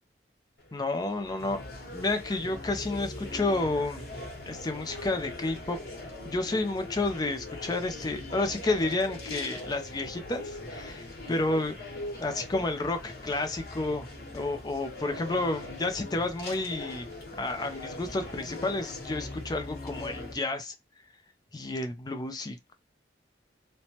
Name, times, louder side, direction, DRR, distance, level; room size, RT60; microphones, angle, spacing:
sound 1, 0.6-20.3, left 2 dB, 60° left, 1.2 m, -41 dB
voice 1, 0.7-1.6 1.9-4.1 4.5-5.8 6.3-11.8 12.2-14.1 14.3-17.1 17.4-20.7 21.5-22.7, left 2 dB, 20° left, 0.4 m, -31 dB
3.2 x 2.0 x 2.8 m
head